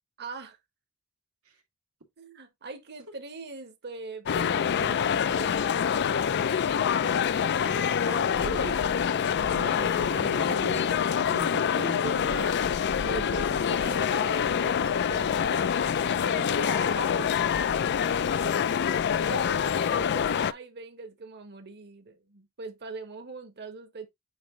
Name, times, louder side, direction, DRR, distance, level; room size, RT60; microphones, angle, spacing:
voice 1, 0.2-0.6 2.2-5.6 7.8-8.7 9.3-9.9 12.0-12.7 13.0-17.6 18.9-24.1, right 3 dB, 50° right, 1.4 m, -41 dB
sound 1, 4.3-20.5, left 7 dB, 50° left, 0.4 m, -26 dB
voice 2, 8.1-8.9 9.4-12.0 18.1-18.5, right 2 dB, 85° right, 2.2 m, -40 dB
8.8 x 3.0 x 3.7 m
head